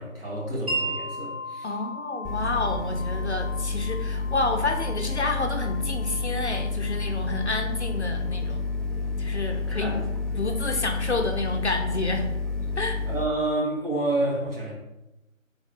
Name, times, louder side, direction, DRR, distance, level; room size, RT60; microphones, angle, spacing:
voice 1, 0.0-1.8 9.7-10.0 13.0-14.7, right 2 dB, 45° right, -4 dB, 1.5 m, -29 dB
Wind chime, 0.7-8.3, right 1 dB, 30° right, 1.3 m, -37 dB
voice 2, 1.6-8.6 9.2-12.3 12.8-13.0, left 3 dB, 55° left, 4 dB, 0.5 m, -29 dB
sound 1, 2.2-13.3, left 3 dB, ahead, 0.4 m, -29 dB
3.6 x 3.6 x 3.6 m, 0.96 s
figure-of-eight pair, 175°, 41 cm